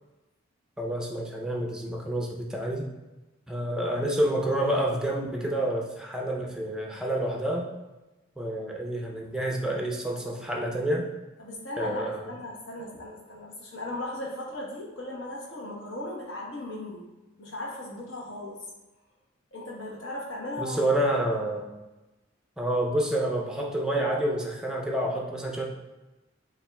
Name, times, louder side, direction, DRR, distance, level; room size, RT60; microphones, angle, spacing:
voice 1, 0.8-2.9 3.5-7.7 8.4-11.1 11.8-12.3 20.6-21.7 22.6-25.7, right 1 dB, 5° right, 0 dB, 0.4 m, -28 dB
voice 2, 11.4-17.1 17.4-18.6 19.5-20.8, left 1 dB, 65° left, -3 dB, 1.0 m, -37 dB
7.0 x 2.5 x 2.2 m, 1.1 s
head